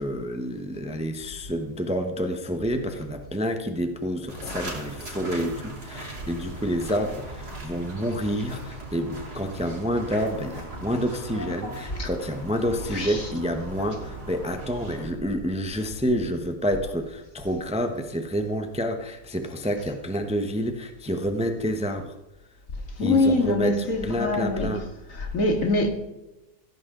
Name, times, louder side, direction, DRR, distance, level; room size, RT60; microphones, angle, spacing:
voice 1, 0.0-22.1 23.0-24.9, equal, 5° right, 1.0 m, -28 dB
sound 1, 4.3-15.1, right 1 dB, 80° right, 4.6 m, -38 dB
voice 2, 23.0-24.7 25.2-25.9, left 2 dB, 60° left, 2.6 m, -23 dB
16.0 x 14.5 x 3.9 m
omnidirectional pair, 1.6 m